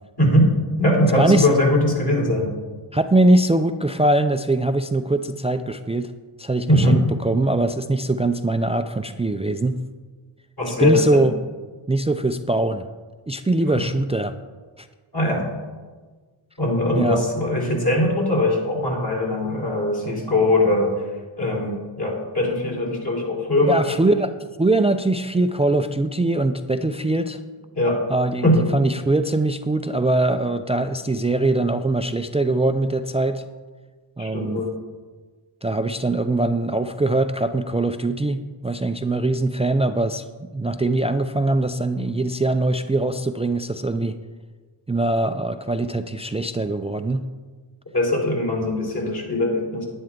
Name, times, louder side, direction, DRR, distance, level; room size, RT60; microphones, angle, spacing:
voice 1, 0.2-0.5 0.8-2.5 6.7-7.0 10.6-11.3 15.1-15.4 16.6-20.9 21.4-24.2 27.7-28.0 28.4-28.7 34.2-34.7 47.9-49.8, left 1 dB, 50° left, -3 dB, 3.5 m, -21 dB
voice 2, 1.2-1.6 2.9-6.1 6.4-9.8 10.8-11.3 11.9-12.9 13.3-14.3 14.8-14.9 17.0-17.2 23.7-27.4 28.1-28.5 28.7-33.4 34.2-34.6 35.6-40.2 40.5-44.2 44.9-47.3, right 2 dB, 15° right, 9 dB, 0.3 m, -22 dB
10.5 x 9.8 x 3.7 m, 1.4 s
cardioid pair, 75°, 48 cm